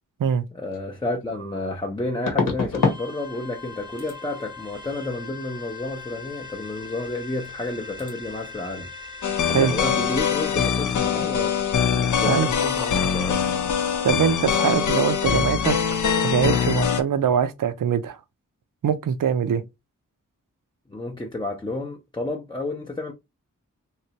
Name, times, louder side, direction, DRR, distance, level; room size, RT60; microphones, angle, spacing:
voice 1, 0.5-8.9 9.5-11.5 12.0-13.4 20.9-23.1, left 2 dB, 15° left, 0.5 m, -31 dB
sound 1, 0.7-0.8 2.3-3.0 3.3-3.7 4.0-4.2 7.1-7.2 7.5-7.7 8.0-8.1, left 4 dB, 90° left, 1.1 m, -26 dB
sound 2, 2.8-10.5, left 5 dB, 15° right, 0.8 m, -40 dB
sound 3, 9.2-17.0, left 7 dB, 70° left, 0.6 m, -23 dB
voice 2, 14.0-15.7 16.2-18.2 18.8-19.6, right 8 dB, 80° right, 0.6 m, -22 dB
3.2 x 2.9 x 2.8 m
wide cardioid pair, 125°, 32 cm